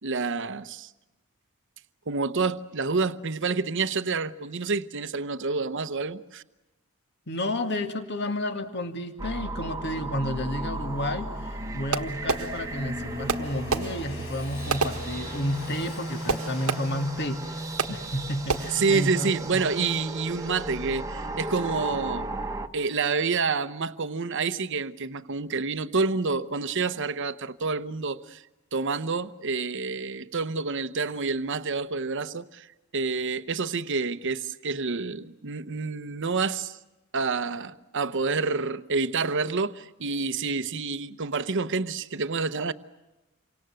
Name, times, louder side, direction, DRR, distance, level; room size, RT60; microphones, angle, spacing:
voice 1, 0.0-0.9 2.1-6.4 18.7-22.3 22.7-28.4 28.7-32.7 32.9-36.8 37.1-42.7, right 4 dB, 60° right, 0.9 m, -28 dB
voice 2, 7.3-19.6, left 1 dB, 50° left, 2.2 m, -31 dB
sound 1, 9.2-22.7, right 2 dB, 15° right, 1.3 m, -35 dB
Train, 10.2-20.6, left 3 dB, 70° left, 3.8 m, -47 dB
Fireworks, 11.9-12.9 13.3-15.7 16.3-17.2 17.8-18.2 18.5-19.0, right 4 dB, 90° right, 1.5 m, -31 dB
28.5 x 25.0 x 7.8 m
head